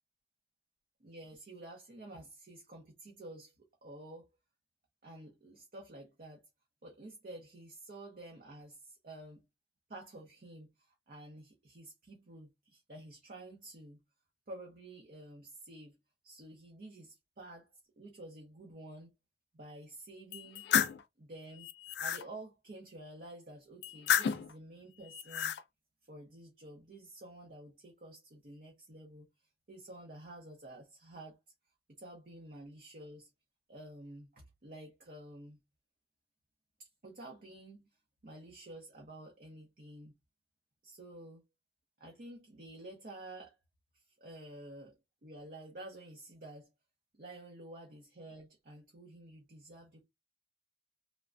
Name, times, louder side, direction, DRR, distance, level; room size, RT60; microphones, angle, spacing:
voice 1, 1.0-3.5 3.8-4.3 5.0-6.5 6.8-9.4 9.9-14.0 14.5-16.0 16.2-17.7 18.0-19.1 19.5-20.7 21.2-21.7 22.0-25.6 26.0-29.3 29.7-31.4 32.0-33.3 33.7-35.6 36.8-37.9 38.2-40.1 40.8-41.4 42.0-43.6 43.9-46.7 47.1-50.0, right 1 dB, 50° right, 0.7 m, -50 dB
sound 1, 20.3-21.0 21.6-22.2 23.8-24.5 25.1-25.6, left 8 dB, 65° left, 0.3 m, -31 dB
3.2 x 2.1 x 2.4 m
head